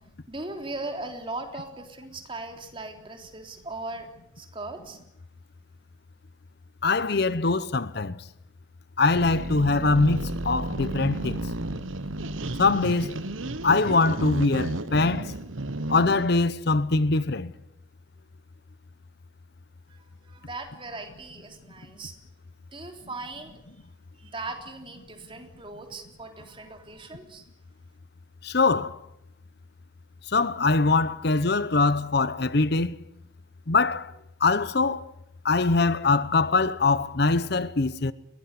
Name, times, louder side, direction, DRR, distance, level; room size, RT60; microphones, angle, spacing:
voice 1, 0.3-4.1 4.4-5.0 19.9-22.1 22.7-23.6 24.2-27.4, right 2 dB, 25° right, 3.5 m, -38 dB
voice 2, 6.8-8.2 9.0-11.5 12.6-13.2 13.6-15.3 15.9-17.5 28.4-29.0 30.3-33.0 33.7-34.1 34.4-35.1 35.4-38.1, left 3 dB, 55° left, 0.9 m, -23 dB
sound 1, 9.1-16.3, right 2 dB, 85° right, 1.3 m, -33 dB
22.0 x 18.5 x 9.7 m
head